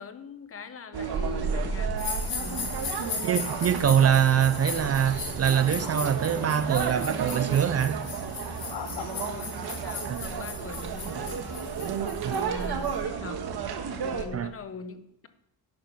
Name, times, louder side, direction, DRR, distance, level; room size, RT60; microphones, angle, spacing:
voice 1, 0.0-2.8 8.8-11.8 12.3-13.4 14.0-15.3, left 5 dB, 35° left, 0.9 m, -42 dB
sound 1, 0.9-14.2, right 6 dB, 70° right, 1.5 m, -32 dB
sound 2, 2.0-12.9, left 6 dB, 60° left, 2.8 m, -38 dB
voice 2, 3.2-8.0 10.1-10.4 12.2-12.4 14.3-14.5, right 9 dB, 40° right, 0.4 m, -24 dB
sound 3, 4.8-5.4 5.8-6.6 7.2-7.9 8.5-9.7, left 8 dB, 80° left, 1.1 m, -43 dB
11.0 x 8.8 x 5.9 m
wide cardioid pair, 165°, 40 cm